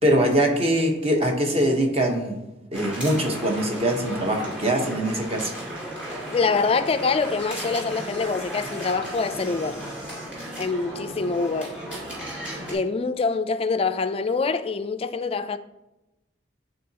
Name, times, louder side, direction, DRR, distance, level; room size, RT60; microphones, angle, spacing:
voice 1, 0.0-2.4 2.7-5.5, right 1 dB, 30° right, 1.0 m, -22 dB
sound 1, 2.7-12.7, right 1 dB, 5° right, 2.2 m, -35 dB
voice 2, 6.3-9.8 10.6-11.7 12.7-15.6, left 4 dB, 30° left, 0.3 m, -25 dB
10.0 x 3.8 x 2.9 m
head